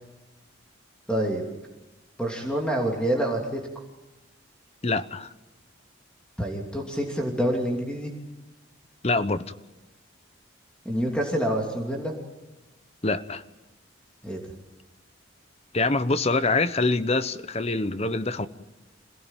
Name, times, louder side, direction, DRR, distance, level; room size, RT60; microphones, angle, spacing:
voice 1, 1.1-1.4 2.2-3.6 6.4-8.1 10.8-12.1 14.2-14.4, right 1 dB, 5° left, 0 dB, 2.9 m, -27 dB
voice 2, 4.8-5.3 9.0-9.5 13.0-13.4 15.7-18.5, left 3 dB, 30° left, 13 dB, 0.9 m, -25 dB
27.0 x 18.0 x 9.1 m, 1.0 s
head